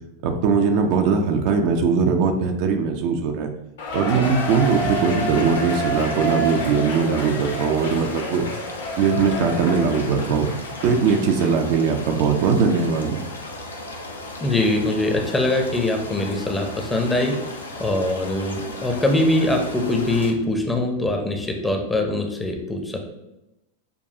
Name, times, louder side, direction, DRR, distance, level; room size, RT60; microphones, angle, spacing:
voice 1, 0.2-3.5 3.9-8.5 9.0-10.5 10.8-13.2, right 5 dB, 45° right, 4 dB, 0.4 m, -20 dB
Cheering, 3.8-11.6 12.0-12.1 12.7-12.8, equal, 60° left, 0.9 m, -29 dB
sound 1, 4.2-20.3, left 2 dB, 75° left, 0.5 m, -36 dB
voice 2, 14.4-17.4 17.8-23.0, left 2 dB, 10° left, 3 dB, 0.6 m, -22 dB
6.9 x 2.3 x 2.7 m, 0.92 s
figure-of-eight pair, 90°, 0 cm